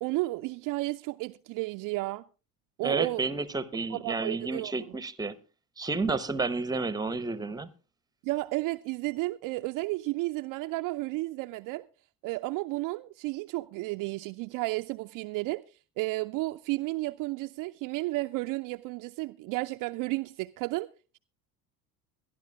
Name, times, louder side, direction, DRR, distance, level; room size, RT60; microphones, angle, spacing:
voice 1, 0.0-2.2 2.8-3.2 3.9-4.7 8.2-11.9 12.2-15.6 16.0-20.9, right 21 dB, 45° right, 0.6 m, -32 dB
voice 2, 2.8-5.3 5.8-7.7, right 3 dB, 10° right, 0.9 m, -31 dB
22.5 x 12.0 x 2.3 m
figure-of-eight pair, 60°, 46 cm